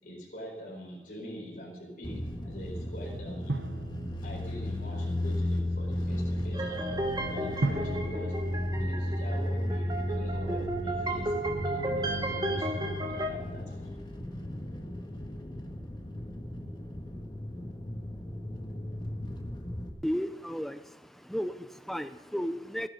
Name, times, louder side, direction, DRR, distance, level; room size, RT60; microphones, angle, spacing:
voice 1, 0.0-3.6 4.2-7.0 7.3-8.3 8.8-11.3 11.6-13.9, equal, 45° left, -3 dB, 4.6 m, -43 dB
sound 1, 2.0-19.9, left 1 dB, 25° left, 1.5 m, -35 dB
Drum, 3.5-5.0 7.6-9.8, right 2 dB, 70° right, 1.0 m, -36 dB
sound 2, 6.5-13.3, right 1 dB, 25° right, 1.4 m, -34 dB
voice 2, 20.0-22.9, equal, ahead, 11 dB, 0.5 m, -34 dB
16.0 x 10.5 x 6.5 m, 1.2 s
head